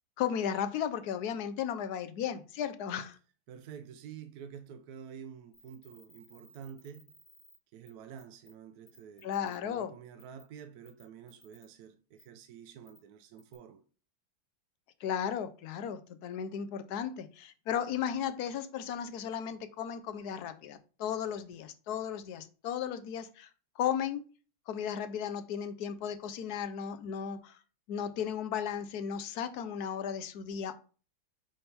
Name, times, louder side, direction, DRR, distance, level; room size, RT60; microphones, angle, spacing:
voice 1, 0.2-3.2 9.2-9.9 15.0-23.5 23.8-24.2 24.7-27.6 27.9-30.8, left 8 dB, 65° left, 1.0 m, -35 dB
voice 2, 3.5-7.1 7.7-13.8, right 8 dB, 70° right, 0.9 m, -49 dB
sound 1, 5.5-7.6 7.9-8.0 8.2-8.5 8.9-9.6 10.2-10.4 10.8-11.7 12.2-12.3 12.9-13.0 13.4-13.5, equal, 25° left, 1.7 m, -59 dB
8.8 x 3.5 x 4.3 m
omnidirectional pair, 2.2 m